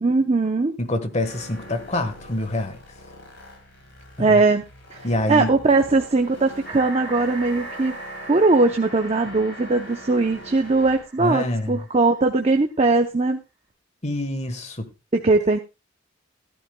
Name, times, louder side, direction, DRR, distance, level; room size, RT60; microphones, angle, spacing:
voice 1, 0.0-0.8 4.2-4.6 4.9-5.0 5.3-8.0 8.3-13.4 15.1-15.6, right 3 dB, 30° right, 0.6 m, -20 dB
voice 2, 0.8-2.8 4.2-4.4 5.0-5.5 11.2-11.9 14.0-14.9, left 1 dB, 35° left, 1.3 m, -26 dB
sound 1, 1.2-11.0, equal, 65° left, 4.8 m, -43 dB
sound 2, 6.7-12.4, right 2 dB, 5° right, 5.7 m, -41 dB
15.0 x 12.0 x 2.2 m
head